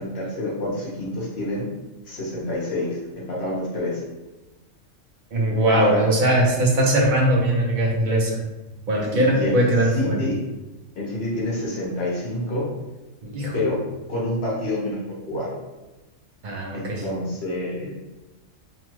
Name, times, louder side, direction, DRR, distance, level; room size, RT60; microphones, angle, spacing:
voice 1, 0.0-1.6 2.1-4.0 5.7-6.0 9.1-9.6 9.9-10.4 11.0-12.7 13.5-13.8 14.1-15.0 15.3-15.5 16.7-17.9, left 1 dB, 55° left, -5 dB, 1.0 m, -27 dB
voice 2, 5.3-8.4 8.9-10.2 13.2-13.6 16.4-17.0, right 1 dB, 55° right, -2 dB, 0.5 m, -20 dB
2.9 x 2.3 x 3.0 m, 1.1 s
omnidirectional pair, 1.4 m